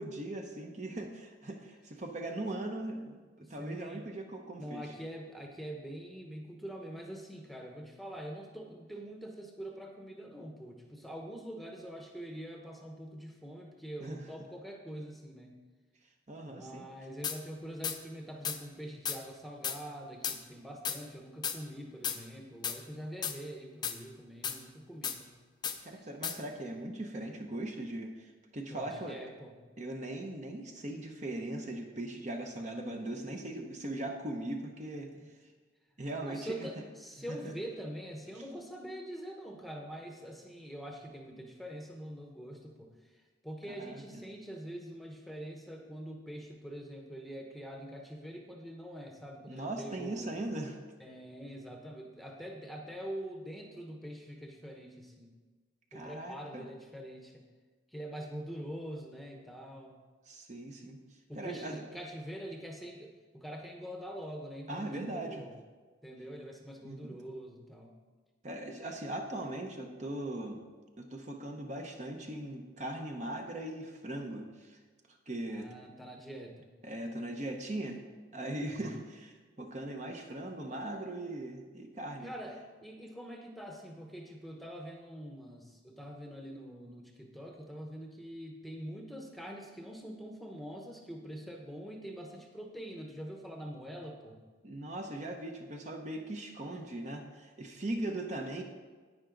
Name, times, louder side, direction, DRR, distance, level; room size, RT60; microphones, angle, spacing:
voice 1, 0.0-3.2 3.5-4.9 14.0-14.3 16.3-16.9 25.8-29.2 29.8-35.1 36.0-36.7 37.3-37.5 43.7-44.2 49.5-50.8 55.9-56.7 60.3-61.0 61.4-61.8 64.7-65.5 66.8-67.1 68.4-70.6 71.0-74.8 75.3-75.7 76.8-78.0 78.3-79.3 79.6-82.3 94.6-98.6, right 1 dB, 35° right, 3 dB, 0.8 m, -39 dB
voice 2, 3.4-4.1 4.5-15.6 16.5-25.3 25.9-26.1 28.7-29.7 35.1-35.3 36.2-50.3 51.0-55.3 55.9-57.4 57.9-59.9 61.3-65.5 66.0-68.0 75.5-76.7 78.6-79.0 82.2-94.4, equal, ahead, 1 dB, 0.9 m, -44 dB
sound 1, 17.2-17.4 17.8-18.0 18.4-18.6 19.1-19.2 19.6-19.8 20.2-20.4 20.8-21.0 21.4-21.6 22.0-22.2 22.6-22.8 23.2-23.4 23.8-24.0 24.4-24.6 25.0-25.2 25.6-25.8 26.2-26.4, left 7 dB, 20° left, 0.5 m, -34 dB
10.5 x 9.3 x 3.9 m, 1.4 s
head